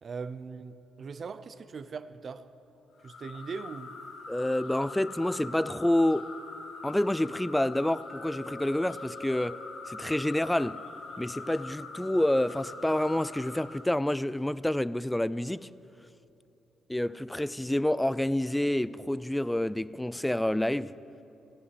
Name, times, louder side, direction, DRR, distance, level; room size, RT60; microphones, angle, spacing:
voice 1, 0.0-2.5 3.0-4.0, right 5 dB, 45° right, 0.6 m, -40 dB
sound 1, 3.0-13.9, left 4 dB, 70° left, 2.3 m, -43 dB
voice 2, 4.3-6.3 6.8-9.6 9.9-10.8 11.2-15.7 16.9-20.9, left 1 dB, 5° left, 0.3 m, -28 dB
Glass, 8.1-12.2, equal, 15° right, 2.3 m, -50 dB
15.5 x 8.2 x 9.7 m
cardioid pair, 90°, 0 cm